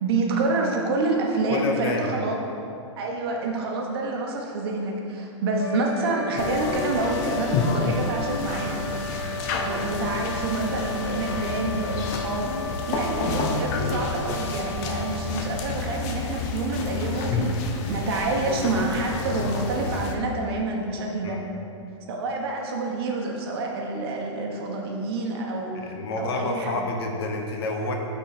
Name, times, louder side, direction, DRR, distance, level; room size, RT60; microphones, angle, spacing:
voice 1, 0.0-2.4 3.0-8.8 9.6-21.4 22.1-25.9 26.2-26.9, right 3 dB, 50° right, 0 dB, 1.1 m, -28 dB
voice 2, 1.5-2.2 21.2-21.5 25.7-28.0, left 2 dB, 50° left, 2 dB, 0.9 m, -29 dB
sound 1, 5.6-16.5, left 2 dB, 80° left, 0.5 m, -35 dB
sound 2, 6.4-20.1, left 4 dB, 30° left, 0.6 m, -29 dB
8.5 x 4.1 x 4.1 m, 2.6 s
hypercardioid pair, 150°, 16 cm